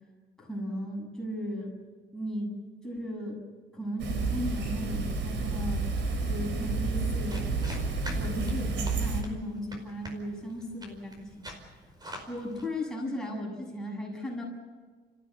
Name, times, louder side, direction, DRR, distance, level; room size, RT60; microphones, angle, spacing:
voice 1, 0.4-1.7 2.1-2.5 2.8-3.4 3.7-5.8 6.3-7.5 8.1-11.5 12.3-14.4, equal, 5° left, -2 dB, 7.5 m, -36 dB
sound 1, 4.0-9.2, right 3 dB, 75° right, 4.0 m, -30 dB
sound 2, 7.3-12.7, equal, 20° right, 5.0 m, -45 dB
30.0 x 16.0 x 8.3 m, 1.4 s
cardioid pair, 140°, 19 cm